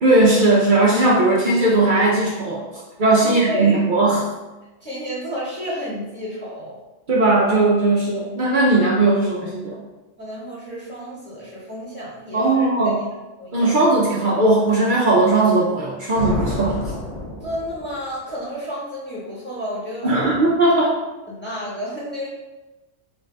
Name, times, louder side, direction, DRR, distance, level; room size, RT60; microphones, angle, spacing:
voice 1, 0.0-2.7 3.0-4.3 7.1-9.8 12.3-13.0 13.5-16.9 20.0-21.0, right 2 dB, 55° right, -3 dB, 0.6 m, -18 dB
voice 2, 3.2-3.9 4.8-6.8 10.2-12.9 13.4-13.8 17.4-20.5 21.3-22.3, equal, 10° left, -8 dB, 1.2 m, -31 dB
sound 1, 16.1-18.1, left 1 dB, 40° left, 0.8 m, -28 dB
3.9 x 2.5 x 3.2 m, 1.1 s
omnidirectional pair, 1.2 m